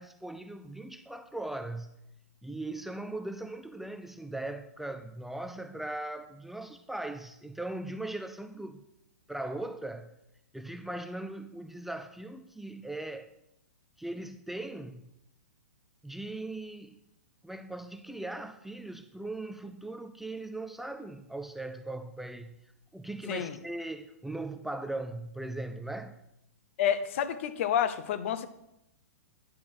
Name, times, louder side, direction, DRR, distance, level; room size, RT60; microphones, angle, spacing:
voice 1, 0.0-1.9 2.4-8.8 9.3-10.1 10.5-13.3 14.0-15.1 16.0-17.0 17.4-22.5 22.9-26.2, right 2 dB, 5° right, 8 dB, 0.4 m, -39 dB
voice 2, 26.8-28.5, left 9 dB, 50° left, 12 dB, 0.7 m, -29 dB
10.0 x 5.9 x 6.2 m, 0.84 s
figure-of-eight pair, 110°, 9 cm